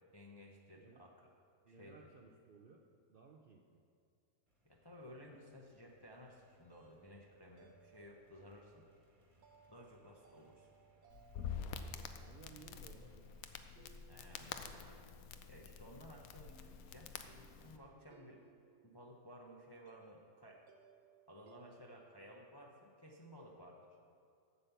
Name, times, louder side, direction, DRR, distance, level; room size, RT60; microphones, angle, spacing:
voice 1, 0.1-1.1 1.7-2.0 4.6-8.9 9.7-10.7 14.1-15.1 15.5-17.2 17.6-18.4 18.8-20.6 21.3-24.0, equal, 25° left, 0 dB, 0.5 m, -56 dB
voice 2, 0.7-1.1 1.6-2.8 3.1-3.8 10.5-10.6 11.6-13.3, right 4 dB, 55° right, 1 dB, 0.6 m, -60 dB
sound 1, 4.5-13.5, equal, 20° right, 1.5 m, -72 dB
sound 2, 6.5-22.3, right 7 dB, 80° right, 1.4 m, -67 dB
Crackle, 11.1-17.8, left 7 dB, 75° left, 1.0 m, -48 dB
8.2 x 7.4 x 6.8 m, 2.3 s
omnidirectional pair, 1.6 m